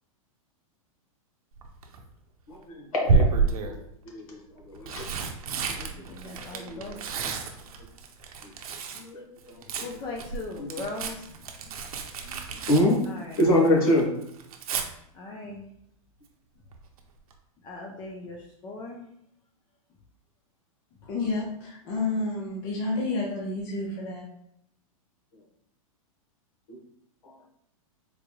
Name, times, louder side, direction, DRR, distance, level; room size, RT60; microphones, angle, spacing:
Tearing, 1.6-2.0 3.0-3.8 4.6-9.1 9.4-13.7 14.0-14.8 16.7-17.0 17.3-17.4, right 4 dB, 80° right, 0.6 m, -30 dB
voice 1, 2.5-3.3 3.6-3.8 4.1-4.4 4.8-5.0 5.8-5.9 6.2-6.8 8.9-9.2 9.8-9.9 10.6-10.7 12.2-12.4 12.7-13.0 13.4-14.1 26.7-26.8, left 1 dB, 85° left, -1 dB, 1.2 m, -25 dB
voice 2, 6.1-7.4 9.8-11.2 13.1-13.4 15.1-15.7 17.6-18.4 18.6-19.1, left 2 dB, 25° left, 0 dB, 0.4 m, -39 dB
voice 3, 21.0-24.2, left 3 dB, 50° left, -3 dB, 0.9 m, -30 dB
3.9 x 2.2 x 3.0 m, 0.76 s
hypercardioid pair, 130°, 18 cm